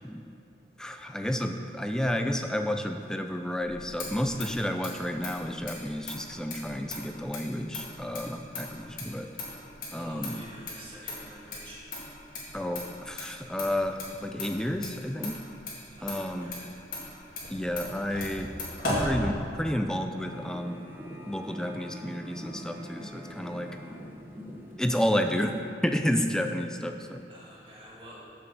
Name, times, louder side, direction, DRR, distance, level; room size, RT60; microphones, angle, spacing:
voice 1, 0.8-9.3 9.9-10.4 12.5-15.4 16.0-16.5 17.5-18.5 18.9-20.8 21.3-23.8 24.8-25.6 25.8-27.2, equal, 5° left, 5 dB, 0.4 m, -31 dB
Motor vehicle (road), 3.6-19.8, left 1 dB, 50° left, 2.0 m, -38 dB
voice 2, 9.9-11.9 16.0-16.6 27.3-28.2, equal, 30° right, -6 dB, 2.0 m, -48 dB
sound 1, 20.2-25.6, equal, 10° right, 1.0 m, -43 dB
6.2 x 6.0 x 6.9 m, 2.6 s
head